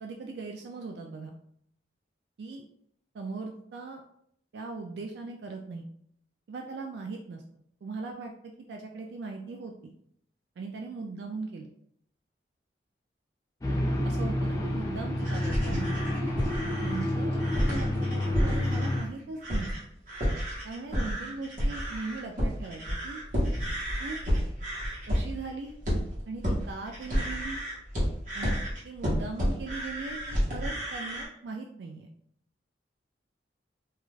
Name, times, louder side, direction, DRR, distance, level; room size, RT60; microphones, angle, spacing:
voice 1, 0.0-1.3 2.4-2.6 3.1-4.0 4.5-5.9 6.5-7.4 7.8-9.9 10.6-11.7 14.0-16.2 16.8-19.7 20.6-23.2 24.0-24.2 25.1-25.8 26.3-27.6 28.3-28.6 28.8-32.1, right 3 dB, 70° right, 2 dB, 0.3 m, -39 dB
sound 1, 13.6-19.0, left 1 dB, 20° left, 0.4 m, -29 dB
sound 2, 15.2-19.1 19.4-19.8 20.1-31.3, equal, 45° right, 0.9 m, -31 dB
2.4 x 2.3 x 3.1 m, 0.68 s
head